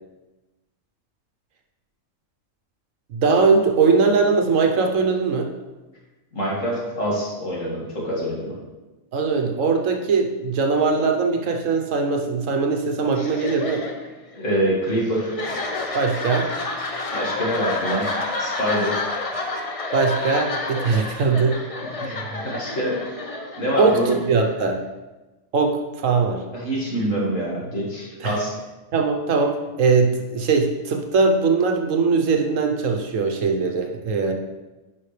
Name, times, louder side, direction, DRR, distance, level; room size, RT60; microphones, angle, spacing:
voice 1, 3.1-5.5 9.1-13.8 15.9-16.5 19.9-21.6 23.8-24.8 25.5-26.4 28.2-28.4 28.9-34.3, right 4 dB, 70° right, 3 dB, 1.2 m, -20 dB
voice 2, 6.3-8.5 14.3-15.3 17.1-18.1 18.4-19.0 22.0-23.0 23.6-24.2 26.5-28.5, equal, 65° left, -4 dB, 2.4 m, -25 dB
sound 1, 13.1-24.8, left 3 dB, 35° left, 0.6 m, -30 dB
10.0 x 5.5 x 3.3 m, 1.1 s
omnidirectional pair, 1.4 m